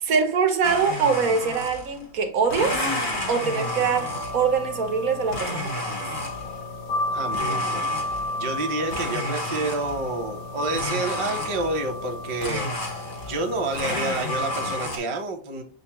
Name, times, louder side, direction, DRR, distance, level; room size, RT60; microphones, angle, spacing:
voice 1, 0.0-2.8 3.3-5.9, right 5 dB, 75° right, 1.3 m, -23 dB
Domestic sounds home sounds, 0.6-2.0 2.4-4.6 5.3-6.6 7.3-8.4 8.9-10.1 10.7-11.8 12.4-13.5 13.7-15.0, left 1 dB, 40° left, 1.2 m, -31 dB
sound 1, 3.4-14.8, left 1 dB, 85° left, 1.2 m, -32 dB
voice 2, 7.1-12.7 13.3-15.6, right 2 dB, 30° right, 0.6 m, -29 dB
6.7 x 2.2 x 2.9 m
omnidirectional pair, 1.5 m